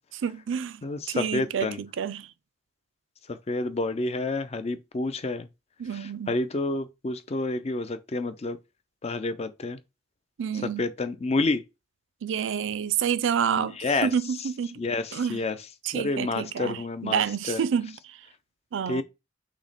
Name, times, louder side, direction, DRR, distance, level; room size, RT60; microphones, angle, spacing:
voice 1, 0.1-2.3 5.8-6.4 10.4-10.9 12.2-14.8 15.1-15.4 15.8-18.2 18.7-19.0, right 7 dB, 80° right, 0.4 m, -29 dB
voice 2, 0.8-1.8 3.3-5.5 6.3-8.6 9.0-9.8 10.8-11.6 13.6-14.1 14.8-15.6 15.9-17.2 17.5-17.6 18.9-19.0, left 2 dB, 35° left, 0.5 m, -29 dB
6.0 x 2.1 x 4.1 m
head